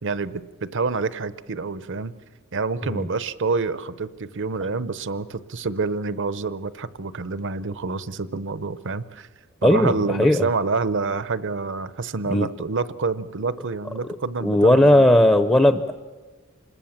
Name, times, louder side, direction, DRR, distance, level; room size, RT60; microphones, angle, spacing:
voice 1, 0.0-2.1 2.5-9.3 9.6-15.2, right 4 dB, 55° right, 15 dB, 0.8 m, -27 dB
voice 2, 9.6-10.5 12.3-12.5 14.4-15.9, left 1 dB, 10° left, 9 dB, 0.7 m, -17 dB
27.0 x 20.5 x 7.4 m, 1.4 s
head